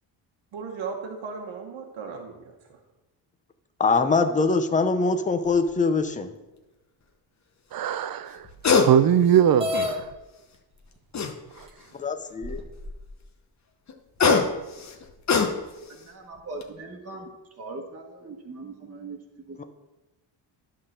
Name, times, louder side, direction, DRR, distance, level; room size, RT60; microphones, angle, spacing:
voice 1, 0.5-2.8, right 5 dB, 70° right, 1.2 m, -36 dB
voice 2, 3.8-6.3 11.9-12.6 19.6-19.7, left 4 dB, 15° left, 0.5 m, -23 dB
sound 1, 5.5-5.7 8.4-8.9 9.3-10.1 11.1-11.8 13.9-15.9 16.4-16.6, left 5 dB, 35° left, 0.9 m, -23 dB
voice 3, 7.7-10.1, right 9 dB, 50° right, 0.5 m, -21 dB
sound 2, 9.6-10.0 11.0-11.1 11.7-11.8 12.4-13.1, left 2 dB, 10° right, 1.2 m, -29 dB
voice 4, 15.9-17.3 17.6-19.2 19.5-19.6, right 3 dB, 30° right, 1.3 m, -40 dB
11.5 x 3.8 x 6.6 m
cardioid pair, 140°, 47 cm